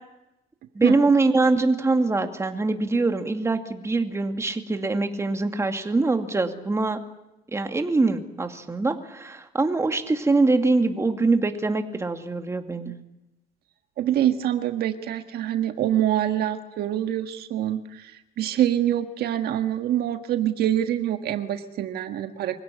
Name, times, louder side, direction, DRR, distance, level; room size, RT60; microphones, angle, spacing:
voice 1, 0.7-7.0 7.5-12.9, right 3 dB, 15° right, 6 dB, 2.4 m, -23 dB
voice 2, 14.0-18.1 18.4-22.6, right 11 dB, 70° right, 7 dB, 1.6 m, -25 dB
25.0 x 17.0 x 10.0 m, 0.93 s
cardioid pair, 110°, 17 cm